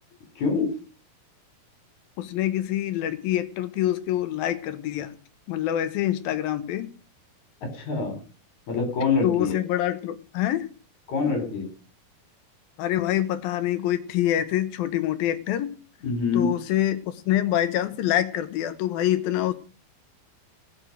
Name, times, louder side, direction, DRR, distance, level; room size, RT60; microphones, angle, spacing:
voice 1, 0.4-0.8 7.6-8.2 8.7-9.6 11.1-11.7 16.0-16.6, left 4 dB, 50° left, 5 dB, 5.0 m, -25 dB
voice 2, 2.2-5.1 5.5-6.9 9.2-10.7 12.8-15.7 16.3-19.5, left 12 dB, 80° left, 12 dB, 2.7 m, -25 dB
18.5 x 6.4 x 6.5 m, 0.38 s
omnidirectional pair, 4.3 m